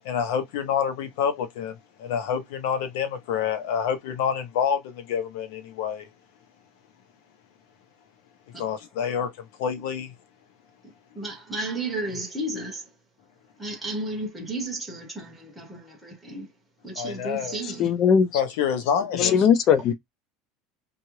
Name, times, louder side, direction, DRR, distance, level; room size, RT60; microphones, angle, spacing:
voice 1, 0.0-6.1 8.6-9.3 9.6-10.1 17.0-17.6 18.3-19.5, left 8 dB, 75° left, 0.7 m, -27 dB
voice 2, 11.1-12.9 13.6-16.5 16.8-17.9, right 2 dB, ahead, 0.7 m, -33 dB
voice 3, 17.8-18.3 19.2-19.9, left 7 dB, 35° left, 0.4 m, -19 dB
2.8 x 2.4 x 3.1 m
cardioid pair, 165°, 0 cm